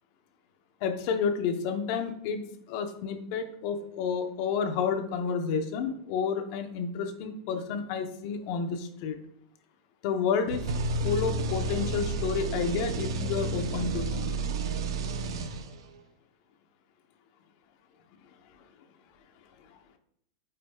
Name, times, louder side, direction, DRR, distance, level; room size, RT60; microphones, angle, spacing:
voice 1, 0.8-9.2 10.0-10.6 11.0-14.3, left 6 dB, 40° left, 6 dB, 0.8 m, -30 dB
sound 1, 10.5-16.0, right 3 dB, 80° right, 0.7 m, -31 dB
8.8 x 5.0 x 2.3 m, 0.68 s
supercardioid pair, 170°, 3 cm